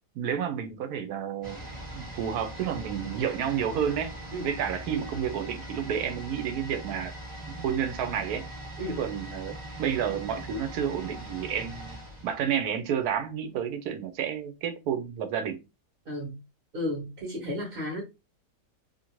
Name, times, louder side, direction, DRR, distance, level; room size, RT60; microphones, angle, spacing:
voice 1, 0.1-1.6 1.9-4.1 4.4-7.1 7.5-8.4 8.9-15.6, right 8 dB, 75° right, 1.0 m, -30 dB
sound 1, 1.4-13.1 13.4-13.5, right 1 dB, 15° right, 0.9 m, -41 dB
voice 2, 16.1-16.4 16.7-18.0, left 1 dB, 40° right, 0.9 m, -33 dB
2.8 x 2.5 x 2.9 m
omnidirectional pair, 1.7 m